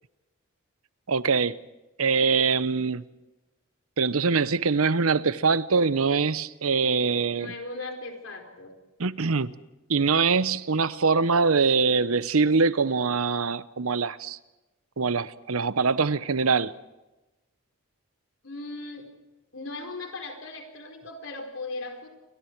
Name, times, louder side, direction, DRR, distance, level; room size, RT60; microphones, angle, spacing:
voice 1, 1.1-1.6 2.0-3.0 4.0-7.5 9.0-9.5 9.9-14.4 15.0-16.7, right 4 dB, 80° right, 0.9 m, -23 dB
voice 2, 7.3-8.8 18.4-19.1 19.5-22.1, left 2 dB, 65° left, 4.4 m, -38 dB
29.5 x 24.5 x 4.7 m
head